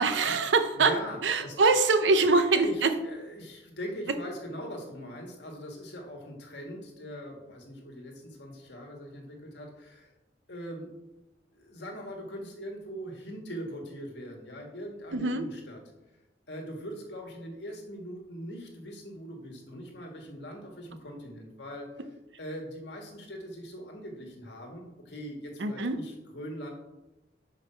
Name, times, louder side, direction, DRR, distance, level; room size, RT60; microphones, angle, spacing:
voice 1, 0.0-0.9 1.2-2.9 15.1-15.4 25.6-26.0, right 3 dB, 85° right, 9 dB, 0.7 m, -23 dB
voice 2, 0.8-1.6 2.3-10.1 10.5-11.0 11.5-15.8 16.5-21.9 22.4-26.7, equal, 70° left, 1 dB, 1.6 m, -41 dB
5.4 x 4.8 x 5.6 m, 0.99 s
head